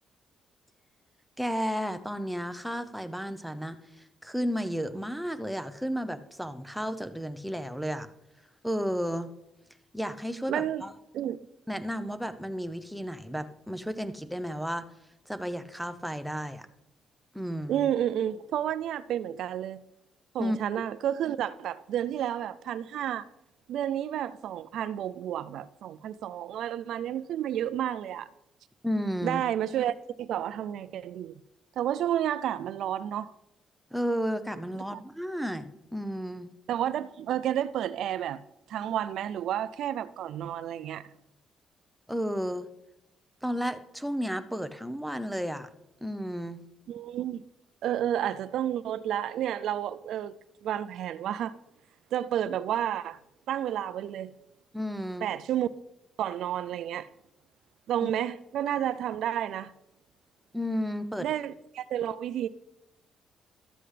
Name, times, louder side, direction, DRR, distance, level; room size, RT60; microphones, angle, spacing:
voice 1, 1.4-8.1 8.6-9.3 9.9-10.9 11.7-14.8 15.3-16.7 17.3-17.8 20.4-20.6 28.8-29.4 33.9-36.5 42.1-42.7 43.4-45.7 46.0-46.6 54.7-55.3 58.0-58.1 60.5-61.3, equal, ahead, 0.7 m, -33 dB
voice 2, 10.5-10.8 11.1-11.4 17.7-19.8 20.3-23.3 23.7-28.3 29.2-31.3 31.8-33.3 34.9-35.0 36.7-38.4 38.7-41.1 46.9-47.4 47.8-50.4 50.6-51.5 52.1-53.2 53.5-54.3 55.2-55.7 56.2-57.1 57.9-59.7 61.2-62.5, right 10 dB, 75° right, 0.3 m, -31 dB
12.5 x 7.7 x 3.3 m
cardioid pair, 90°, 0 cm